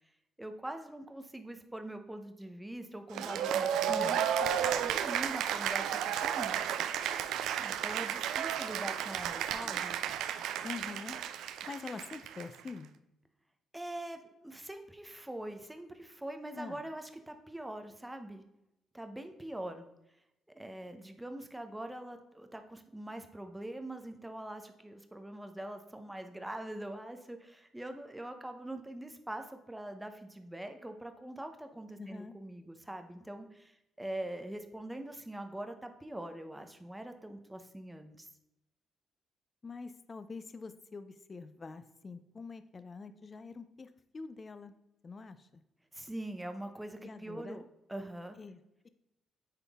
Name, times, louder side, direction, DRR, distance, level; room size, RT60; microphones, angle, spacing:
voice 1, 0.4-7.3 7.6-10.0 13.7-18.4 18.9-19.9 20.5-38.3 45.9-48.4, right 1 dB, 10° right, 7 dB, 0.8 m, -43 dB
Cheering / Applause, 3.1-12.7, right 9 dB, 85° right, 0.4 m, -33 dB
voice 2, 3.9-4.2 10.6-11.2 11.7-12.9 16.5-16.9 32.0-32.3 39.6-44.7 45.0-45.6 47.0-47.6 48.4-48.9, left 4 dB, 35° left, 11 dB, 0.5 m, -45 dB
9.8 x 3.7 x 3.5 m, 0.89 s
cardioid pair, 90°, 0 cm